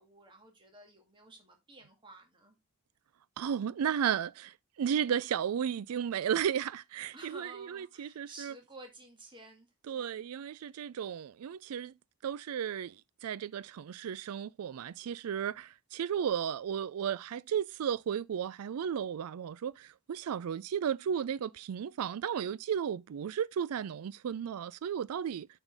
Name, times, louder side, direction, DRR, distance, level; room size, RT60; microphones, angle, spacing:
voice 1, 0.0-2.6 7.1-9.7 9.9-10.2, right 2 dB, 20° right, 1.9 m, -52 dB
voice 2, 3.4-8.5 9.9-11.9 12.2-25.5, right 8 dB, 85° right, 0.4 m, -34 dB
8.9 x 5.6 x 3.4 m
head